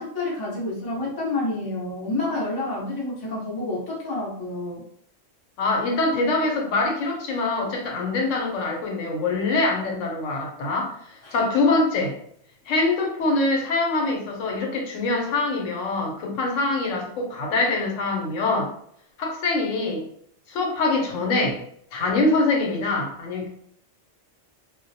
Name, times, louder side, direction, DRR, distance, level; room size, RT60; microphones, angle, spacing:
voice 1, 0.0-4.8 11.2-11.3, left 2 dB, 25° left, -4 dB, 0.5 m, -29 dB
voice 2, 5.6-12.1 12.7-18.7 19.2-20.1 20.5-21.6 21.9-23.5, left 2 dB, 85° left, 1 dB, 1.0 m, -24 dB
2.3 x 2.0 x 2.6 m, 0.67 s
omnidirectional pair, 1.3 m